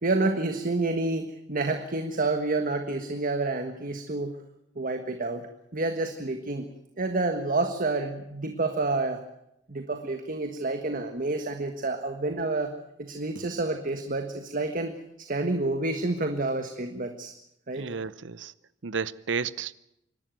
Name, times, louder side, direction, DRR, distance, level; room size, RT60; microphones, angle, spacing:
voice 1, 0.0-4.3 4.7-5.4 5.7-6.7 7.0-9.2 9.7-12.7 13.0-14.9 15.3-17.3 17.7-17.9, right 2 dB, 45° right, 1.5 m, -29 dB
voice 2, 17.7-18.5 18.8-19.8, right 5 dB, 75° right, 0.8 m, -32 dB
26.5 x 12.0 x 9.1 m
head